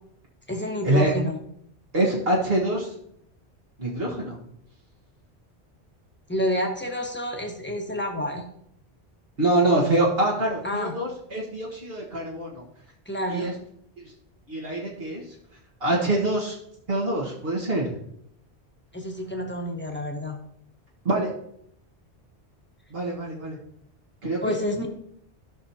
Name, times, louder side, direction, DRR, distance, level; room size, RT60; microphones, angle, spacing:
voice 1, 0.5-1.4 6.3-8.4 10.6-10.9 13.1-13.5 18.9-20.4 24.4-24.9, equal, 10° left, 1 dB, 1.3 m, -29 dB
voice 2, 1.9-2.9 3.8-4.4 9.4-12.6 13.3-13.5 14.5-15.2 15.8-16.6 16.9-17.9 21.1-21.3 22.9-23.6 24.2-24.6, right 1 dB, 60° right, -4 dB, 1.8 m, -25 dB
14.5 x 6.1 x 2.8 m, 0.71 s
omnidirectional pair, 1.1 m